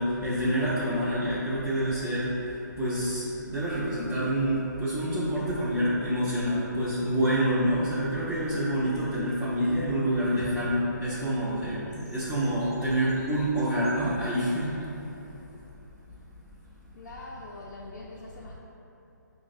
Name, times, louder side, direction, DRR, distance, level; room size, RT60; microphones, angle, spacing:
voice 1, 0.0-15.2, equal, 5° right, -15 dB, 0.4 m, -27 dB
voice 2, 16.9-18.6, left 2 dB, 60° left, -4 dB, 0.4 m, -42 dB
4.8 x 2.0 x 2.4 m, 2.9 s
hypercardioid pair, 155°, 10 cm